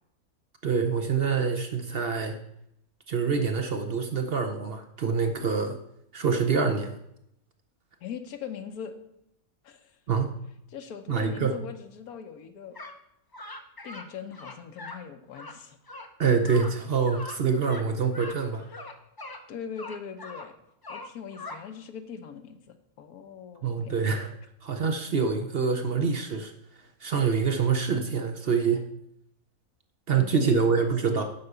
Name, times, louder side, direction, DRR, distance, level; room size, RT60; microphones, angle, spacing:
voice 1, 0.6-2.4 3.1-5.7 6.1-6.9 10.1-10.3 11.1-11.6 16.2-18.7 23.6-24.3 24.6-26.5 27.0-28.8 30.1-31.2, right 5 dB, 50° right, 6 dB, 0.8 m, -26 dB
voice 2, 8.0-9.0 9.6-10.0 10.7-12.8 13.8-15.8 18.7-19.0 19.5-20.5 20.9-22.6 23.0-24.0 30.1-31.3, left 7 dB, 85° left, 8 dB, 1.4 m, -41 dB
sound 1, 12.7-13.0 13.3-14.1 14.3-15.0 15.3-15.6 15.9-16.1 16.4-16.7 17.1-17.4 17.6-17.8 18.1-18.4 18.7-19.4 19.8-20.5 20.8-21.6, left 2 dB, 30° left, 0.4 m, -41 dB
9.5 x 4.9 x 6.7 m, 0.77 s
omnidirectional pair, 1.5 m